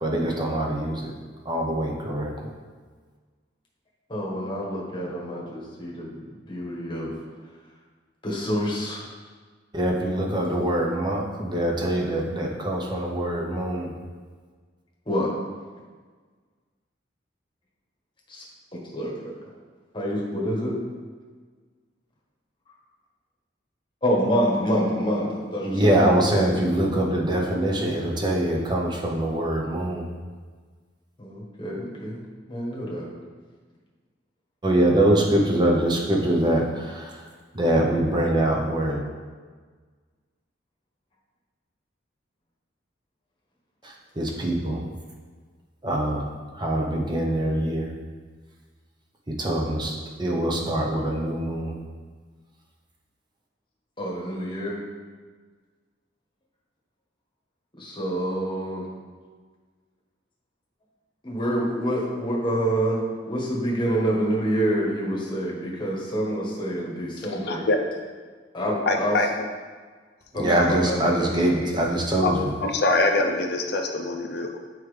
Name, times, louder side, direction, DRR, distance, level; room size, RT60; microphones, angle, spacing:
voice 1, 0.0-1.1 1.5-2.3 9.7-13.9 25.6-30.0 34.6-36.6 37.6-39.0 44.2-44.8 45.8-46.2 46.6-47.9 49.4-49.9 50.2-51.7 70.3-72.3, right 1 dB, 25° right, -1 dB, 0.8 m, -23 dB
voice 2, 4.1-6.2 6.5-7.1 8.2-9.0 15.1-15.3 18.3-18.4 18.7-19.5 19.9-20.8 24.0-26.5 31.2-32.2 32.5-33.1 54.0-54.8 57.8-58.9 61.2-63.0 63.2-67.6 68.5-69.2 70.3-71.8, equal, 25° left, -4 dB, 1.2 m, -27 dB
voice 3, 67.3-67.8 68.9-69.3 72.2-72.3 72.6-74.6, left 2 dB, 60° left, 3 dB, 0.5 m, -24 dB
7.0 x 4.6 x 3.3 m, 1.5 s
head